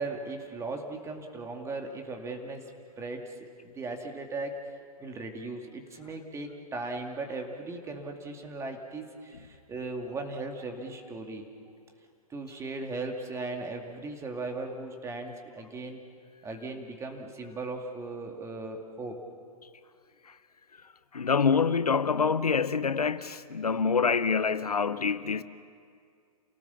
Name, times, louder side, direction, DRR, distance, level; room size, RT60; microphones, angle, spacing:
voice 1, 0.0-2.7 3.0-4.6 5.0-11.4 12.3-16.0 16.4-19.2, right 3 dB, 15° right, 2.4 m, -37 dB
voice 2, 21.1-25.4, left 5 dB, 85° left, 0.8 m, -26 dB
29.0 x 18.0 x 7.1 m
figure-of-eight pair, 115°, 19 cm